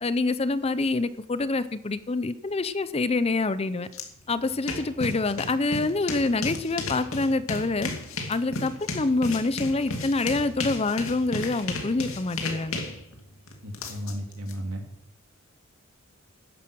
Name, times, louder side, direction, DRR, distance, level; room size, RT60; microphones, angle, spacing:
voice 1, 0.0-3.9 4.3-7.9 8.3-12.8, left 3 dB, 30° left, 14 dB, 0.6 m, -26 dB
sound 1, 3.9-4.0 4.4-14.5, left 3 dB, 75° left, 2.5 m, -34 dB
voice 2, 13.6-14.8, equal, 80° right, 4 dB, 2.7 m, -34 dB
13.0 x 10.5 x 6.3 m, 0.79 s
head